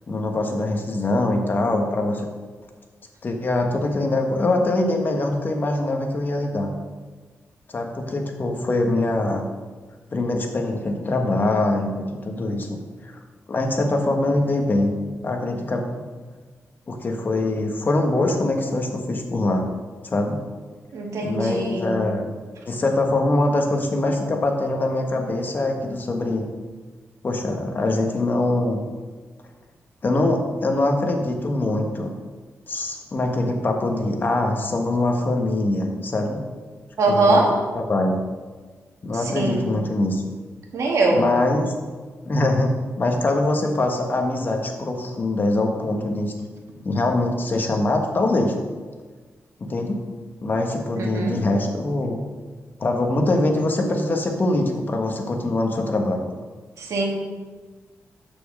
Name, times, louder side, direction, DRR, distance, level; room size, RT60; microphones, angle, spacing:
voice 1, 0.1-2.2 3.2-6.7 7.7-9.4 10.1-12.8 13.0-13.2 13.5-14.9 15.2-15.8 16.9-19.6 20.1-20.4 21.2-22.3 22.7-26.5 27.2-28.9 30.0-32.1 32.7-36.4 37.1-38.2 39.0-40.2 41.1-41.7 42.3-46.3 46.8-48.6 49.6-50.0 50.4-52.2 52.8-56.2, left 2 dB, 40° left, 3 dB, 1.2 m, -23 dB
voice 2, 20.9-21.9 37.0-37.5 39.4-39.7 40.7-41.2 51.0-51.4 56.8-57.0, right 2 dB, 75° right, -1 dB, 1.8 m, -21 dB
6.7 x 6.1 x 6.4 m, 1.4 s
wide cardioid pair, 145°, 5 cm